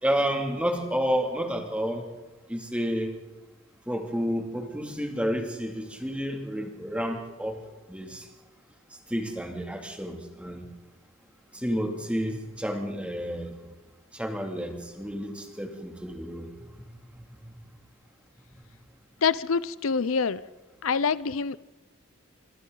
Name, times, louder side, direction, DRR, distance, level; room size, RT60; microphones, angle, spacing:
voice 1, 0.0-2.1 2.5-3.1 3.9-7.6 7.9-8.2 9.1-10.6 11.5-13.5 14.1-16.5, equal, 5° right, 2 dB, 2.5 m, -30 dB
voice 2, 19.2-20.4 20.8-21.6, left 5 dB, 90° left, 17 dB, 0.6 m, -25 dB
26.0 x 25.5 x 4.0 m, 1.1 s
head